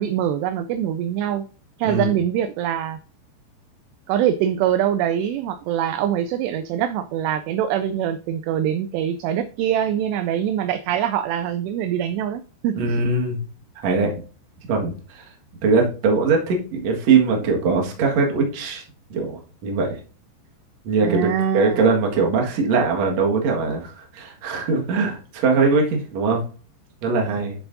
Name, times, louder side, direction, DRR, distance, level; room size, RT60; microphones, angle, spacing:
voice 1, 0.0-1.5 1.8-3.0 4.1-13.0 21.0-21.8, right 10 dB, 85° right, 11 dB, 2.5 m, -24 dB
voice 2, 1.8-2.1 12.8-13.4 13.8-14.2 14.7-15.2 15.6-18.8 19.1-20.0 20.8-26.4 27.0-27.5, right 4 dB, 50° right, 0 dB, 2.2 m, -21 dB
10.5 x 6.9 x 2.7 m, 0.38 s
omnidirectional pair, 5.2 m